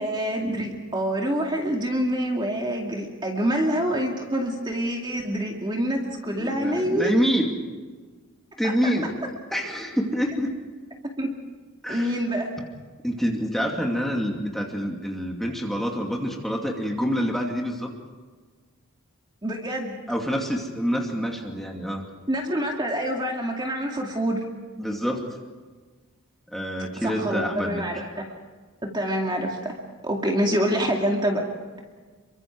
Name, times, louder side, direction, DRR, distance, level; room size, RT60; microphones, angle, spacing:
voice 1, 0.0-7.1 8.6-8.7 11.2-11.3 11.9-12.5 19.4-20.0 22.3-24.4 27.0-28.3 28.8-29.8 30.0-31.5, equal, 20° right, 1 dB, 2.3 m, -26 dB
voice 2, 6.3-7.5 8.6-9.1 9.5-10.5 11.8-12.2 13.0-17.9 20.1-22.1 24.8-25.4 26.5-27.8, equal, ahead, 0 dB, 2.5 m, -27 dB
27.5 x 24.0 x 4.8 m, 1.4 s
head